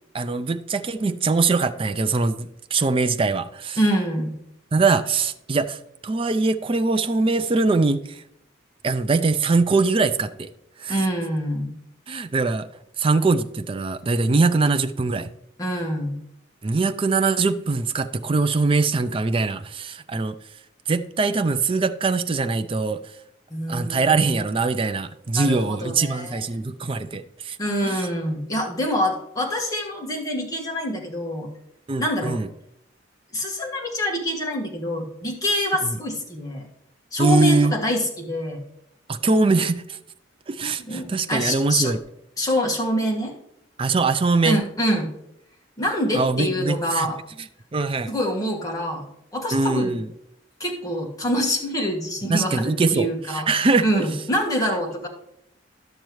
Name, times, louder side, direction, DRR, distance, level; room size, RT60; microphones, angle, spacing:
voice 1, 0.1-3.8 4.7-8.2 8.8-10.5 10.8-11.0 12.1-12.7 13.0-15.3 16.6-20.4 20.9-23.0 23.7-27.6 27.8-28.0 31.9-32.5 35.8-36.0 37.2-37.7 39.1-40.0 40.5-42.0 43.8-44.6 46.1-47.1 47.7-48.1 49.5-50.1 52.3-54.1, right 3 dB, 30° right, 0.4 m, -22 dB
voice 2, 3.8-4.4 10.9-11.7 15.6-16.2 23.5-24.4 25.3-26.4 27.6-31.5 32.0-32.4 33.3-36.7 37.1-38.6 40.8-41.9 42.4-43.3 44.4-45.1 45.8-47.2 48.1-49.0 49.3-50.0 50.6-55.1, equal, 20° left, 1.6 m, -26 dB
11.5 x 6.6 x 3.1 m
head